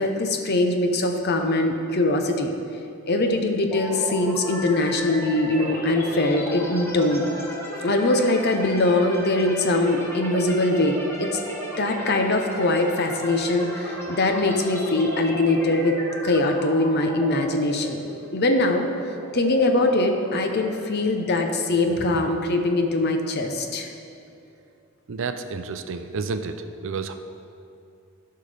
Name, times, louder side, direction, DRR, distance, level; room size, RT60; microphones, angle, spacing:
voice 1, 0.0-2.5 3.1-7.2 7.8-11.4 11.8-18.0 18.3-18.9 19.3-23.9, left 2 dB, 50° left, 5 dB, 0.7 m, -22 dB
sound 1, 3.7-21.5, equal, 10° left, 1.3 m, -35 dB
voice 2, 25.1-26.5 26.8-27.1, right 4 dB, 60° right, 8 dB, 0.5 m, -30 dB
14.0 x 5.6 x 3.4 m, 2.6 s
head